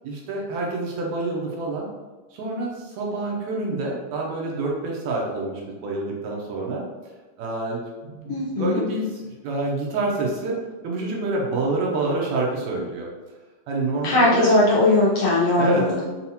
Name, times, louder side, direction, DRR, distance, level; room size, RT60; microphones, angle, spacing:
voice 1, 0.0-1.9 2.3-6.8 7.4-10.6 10.8-13.1 13.7-14.5 15.6-15.9, right 2 dB, 75° right, -2 dB, 1.9 m, -27 dB
voice 2, 8.3-8.8 14.0-16.0, left 2 dB, 70° left, -8 dB, 1.5 m, -19 dB
5.4 x 2.4 x 2.7 m, 1.3 s
omnidirectional pair, 3.5 m